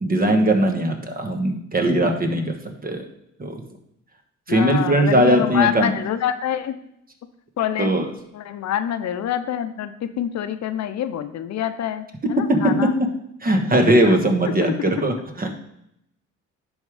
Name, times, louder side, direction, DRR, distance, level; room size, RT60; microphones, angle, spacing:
voice 1, 0.0-3.0 3.4-3.6 4.5-5.9 7.8-8.1 12.5-12.9 13.4-15.5, right 1 dB, 30° right, 4 dB, 1.2 m, -19 dB
voice 2, 4.5-6.8 7.6-7.9 8.3-12.9 14.0-14.2 14.6-14.9, left 10 dB, 65° left, 10 dB, 0.7 m, -26 dB
10.5 x 3.6 x 4.9 m, 0.77 s
cardioid pair, 90°, 30 cm